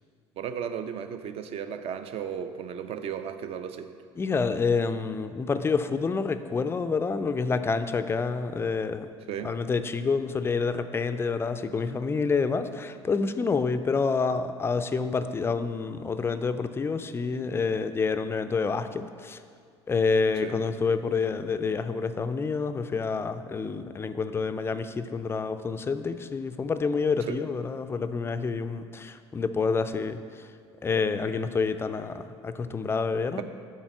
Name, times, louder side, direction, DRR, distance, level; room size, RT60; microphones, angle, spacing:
voice 1, 0.4-3.9 9.3-9.5 20.4-20.6 27.3-27.4 33.4-33.5, right 8 dB, 40° right, 9 dB, 0.5 m, -35 dB
voice 2, 4.2-9.1 9.4-19.4 19.9-30.4 30.8-33.4, left 4 dB, 15° left, 10 dB, 0.4 m, -28 dB
7.4 x 4.1 x 5.9 m, 2.1 s
figure-of-eight pair, 65°, 15 cm